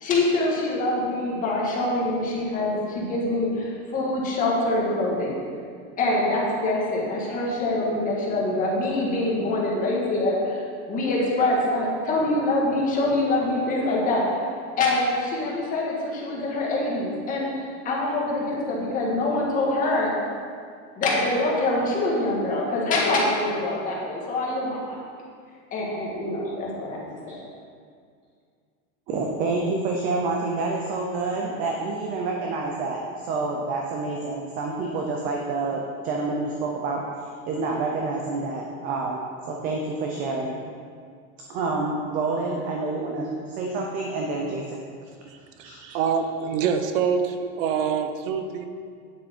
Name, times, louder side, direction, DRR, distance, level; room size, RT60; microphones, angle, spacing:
voice 1, 0.0-5.4 6.0-10.6 10.9-14.4 14.8-20.1 21.0-25.0 25.7-27.0 27.3-27.4, left 2 dB, 20° left, -4 dB, 1.6 m, -25 dB
voice 2, 29.1-37.0 37.5-40.6 41.5-44.8 45.6-46.0, right 3 dB, 20° right, 0 dB, 0.5 m, -28 dB
voice 3, 45.6-48.7, right 6 dB, 85° right, 7 dB, 1.0 m, -25 dB
9.6 x 7.6 x 4.4 m, 2.2 s
supercardioid pair, 175°, 38 cm